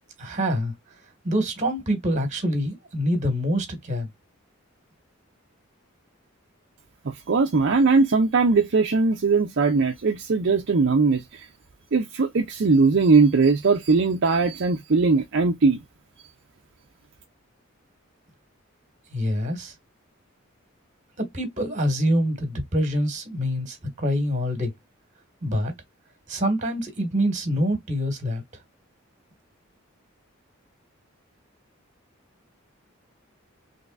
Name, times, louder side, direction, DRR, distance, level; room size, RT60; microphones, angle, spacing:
voice 1, 0.2-0.7 1.2-4.1 19.1-19.7 21.2-24.7 25.4-25.7 26.3-28.4, equal, 35° right, 1.8 m, -25 dB
voice 2, 7.0-11.4 11.9-15.8, right 4 dB, 60° right, 0.5 m, -20 dB
4.1 x 3.3 x 2.5 m
head